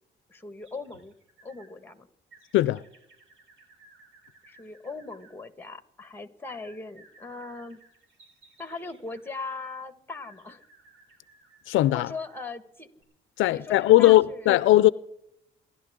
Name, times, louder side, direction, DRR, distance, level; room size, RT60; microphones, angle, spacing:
voice 1, 0.3-1.1 1.4-2.1 4.5-7.8 8.6-10.6 11.9-12.9 13.5-14.5, left 3 dB, 10° left, 1.6 m, -39 dB
sound 1, 0.6-1.7 2.3-5.3 6.5-9.6 10.2-12.5 13.0-13.1, right 3 dB, 75° right, 4.0 m, -58 dB
voice 2, 11.7-12.1 13.4-14.9, left 15 dB, 85° left, 0.5 m, -19 dB
28.5 x 11.5 x 3.7 m
cardioid pair, 90°, 20 cm